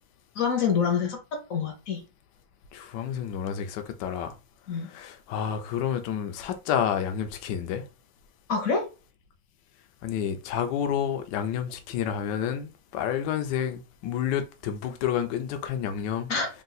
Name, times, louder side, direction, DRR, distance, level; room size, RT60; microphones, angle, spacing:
voice 1, 0.4-1.2 1.5-2.0 4.7-4.9 8.5-8.8 16.3-16.5, left 6 dB, 55° left, 1.0 m, -26 dB
voice 2, 2.7-4.3 4.8-7.9 10.0-16.3, left 9 dB, 75° left, 1.2 m, -30 dB
3.7 x 2.4 x 4.0 m
omnidirectional pair, 2.1 m